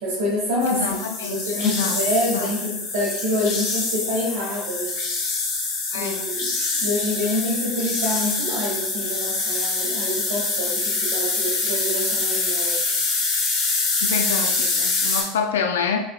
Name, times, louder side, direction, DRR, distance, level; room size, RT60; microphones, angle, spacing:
voice 1, 0.0-1.0 1.3-5.0 5.9-6.5 6.7-12.9, left 1 dB, 85° right, -7 dB, 1.4 m, -27 dB
sound 1, 0.6-15.2, left 3 dB, 65° left, 1.1 m, -25 dB
voice 2, 0.7-2.0 2.3-2.5 5.9-6.2 14.0-16.1, left 5 dB, 90° left, 6 dB, 0.3 m, -27 dB
5.4 x 2.0 x 2.3 m, 0.81 s
hypercardioid pair, 95°, 0 cm